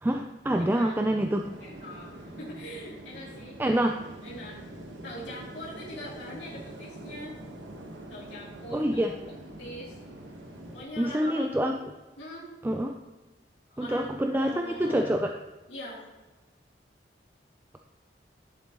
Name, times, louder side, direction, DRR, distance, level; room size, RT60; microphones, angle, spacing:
voice 1, 0.0-1.5 3.6-4.0 8.7-9.1 11.0-11.8 12.6-12.9 13.8-15.3, right 1 dB, 10° right, 4 dB, 0.3 m, -26 dB
voice 2, 0.6-0.9 1.6-3.6 4.2-4.6 5.0-7.4 8.1-9.2 9.6-10.0 10.7-11.7 12.2-12.5 13.7-15.1 15.7-16.0, left 1 dB, 75° left, -7 dB, 2.4 m, -42 dB
sound 1, 1.3-10.8, right 1 dB, 85° right, 1.1 m, -44 dB
11.0 x 7.3 x 2.9 m, 1.2 s
head